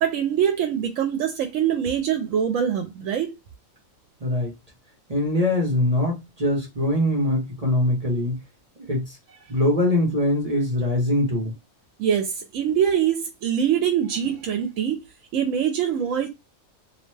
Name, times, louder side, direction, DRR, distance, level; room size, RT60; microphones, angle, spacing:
voice 1, 0.0-3.3 12.0-15.0 15.3-16.3, right 9 dB, 75° right, 0.9 m, -23 dB
voice 2, 4.2-4.5 5.1-8.4 8.8-9.2 9.5-11.5, left 1 dB, 35° right, 0.8 m, -22 dB
2.7 x 2.1 x 3.2 m
omnidirectional pair, 1.4 m